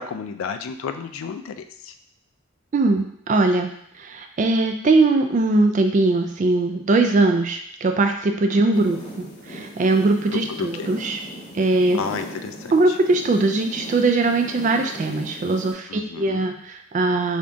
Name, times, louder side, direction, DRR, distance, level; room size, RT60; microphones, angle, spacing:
voice 1, 0.0-1.9 8.7-8.9 10.3-10.9 11.9-13.0 15.9-16.5, left 6 dB, 75° left, 9 dB, 0.3 m, -32 dB
voice 2, 2.7-3.7 4.0-11.2 11.5-12.0 12.7-17.4, right 2 dB, 35° right, 5 dB, 0.3 m, -20 dB
sound 1, 8.7-15.7, equal, 35° left, 0.9 m, -38 dB
3.7 x 3.5 x 2.6 m, 0.69 s
head